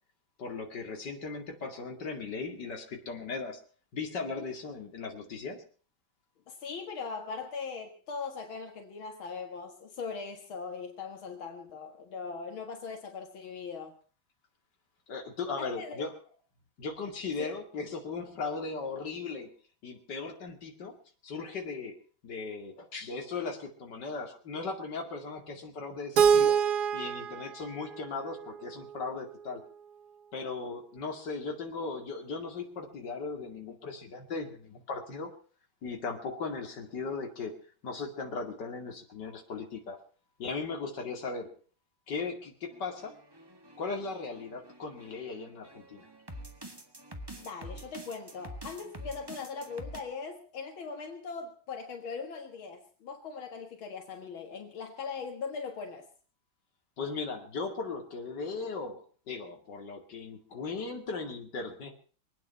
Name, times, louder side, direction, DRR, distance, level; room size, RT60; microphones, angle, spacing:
voice 1, 0.4-3.6 3.9-5.6 15.1-16.1 16.8-19.5 19.8-21.0 21.2-21.9 22.2-26.6 26.9-29.6 30.3-35.3 35.8-37.5 37.8-40.0 40.4-41.5 42.1-43.2 43.8-46.1 57.0-61.9, left 4 dB, 60° left, 3 dB, 2.9 m, -37 dB
voice 2, 6.5-13.9 15.6-16.1 17.4-17.5 47.4-56.1, left 5 dB, 80° left, 5 dB, 2.5 m, -40 dB
Keyboard (musical), 26.2-29.1, right 7 dB, 55° right, 1.5 m, -26 dB
sound 1, 42.7-50.0, right 1 dB, 15° right, 1.3 m, -47 dB
24.0 x 9.3 x 5.5 m, 0.41 s
omnidirectional pair, 2.2 m